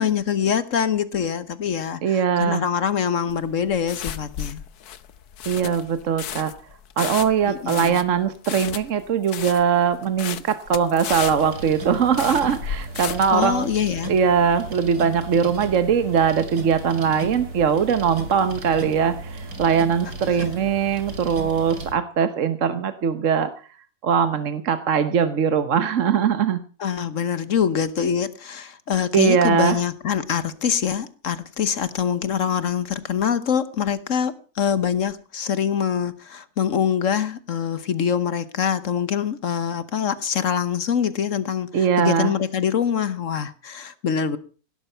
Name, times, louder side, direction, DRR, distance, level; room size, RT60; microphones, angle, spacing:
voice 1, 0.0-4.6 7.4-8.0 13.3-14.1 20.3-20.4 26.8-44.4, left 8 dB, 60° left, 14 dB, 1.3 m, -24 dB
voice 2, 2.0-2.6 5.5-6.5 7.0-13.7 14.1-23.7 24.0-26.6 29.1-29.8 41.7-42.4, right 7 dB, 60° right, 11 dB, 1.3 m, -21 dB
sound 1, 3.3-13.4, left 9 dB, 85° left, 1.4 m, -34 dB
sound 2, 11.1-21.9, right 2 dB, 80° right, 3.1 m, -35 dB
17.0 x 12.5 x 5.6 m, 0.38 s
omnidirectional pair, 1.6 m